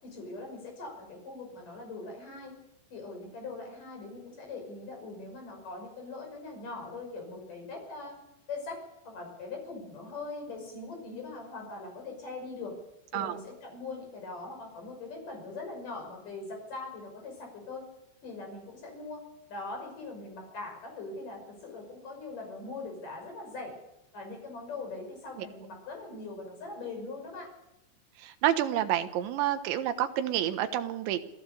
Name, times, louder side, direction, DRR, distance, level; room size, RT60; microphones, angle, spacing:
voice 1, 0.0-2.5 2.9-8.2 8.5-8.8 9.0-12.7 13.1-17.8 18.2-19.2 19.5-23.7 24.1-27.5, left 3 dB, 45° left, 3 dB, 7.2 m, -41 dB
voice 2, 28.2-31.2, right 11 dB, 80° right, 9 dB, 3.4 m, -29 dB
27.0 x 17.0 x 6.9 m, 0.88 s
omnidirectional pair, 5.4 m